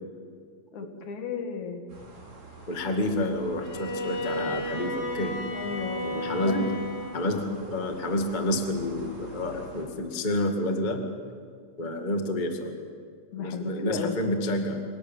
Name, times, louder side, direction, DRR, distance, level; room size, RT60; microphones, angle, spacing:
voice 1, 0.7-1.8 5.5-6.1 6.5-6.7 13.3-14.2, left 5 dB, 60° left, 5 dB, 3.1 m, -33 dB
sound 1, 1.9-9.9, right 1 dB, 45° right, 5.5 m, -46 dB
voice 2, 2.7-5.4 6.0-6.6 7.1-11.0 11.8-12.8 13.4-14.8, left 1 dB, 20° left, 4 dB, 1.2 m, -29 dB
Bowed string instrument, 3.6-7.3, left 1 dB, 45° left, 5.0 m, -33 dB
26.5 x 18.5 x 8.9 m, 2.1 s
omnidirectional pair, 4.2 m